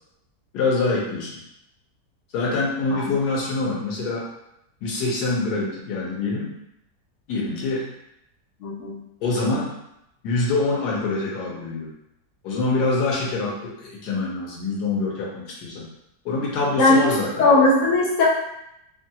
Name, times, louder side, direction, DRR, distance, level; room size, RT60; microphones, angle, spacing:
voice 1, 0.5-1.4 2.3-4.2 4.8-6.5 7.3-7.9 9.2-9.7 10.2-11.9 12.4-15.9 16.2-17.5, left 3 dB, 80° left, -3 dB, 1.2 m, -25 dB
voice 2, 8.6-9.0 16.8-17.0 17.4-18.2, left 2 dB, 55° left, -5 dB, 1.0 m, -18 dB
3.0 x 2.2 x 2.7 m, 0.83 s
omnidirectional pair, 1.8 m